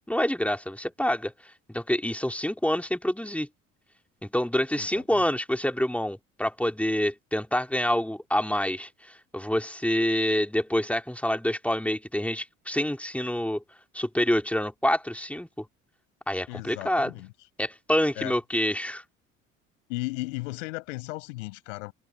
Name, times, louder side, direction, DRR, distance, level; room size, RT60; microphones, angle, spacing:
voice 1, 0.0-1.3 1.7-3.5 4.2-13.6 13.9-15.6 16.3-17.2 17.6-19.0, left 1 dB, 5° left, 4.0 m, -27 dB
voice 2, 4.7-5.3 16.5-17.3 18.2-18.3 19.9-21.9, left 23 dB, 70° left, 5.6 m, -35 dB
figure-of-eight pair, 60°, 39 cm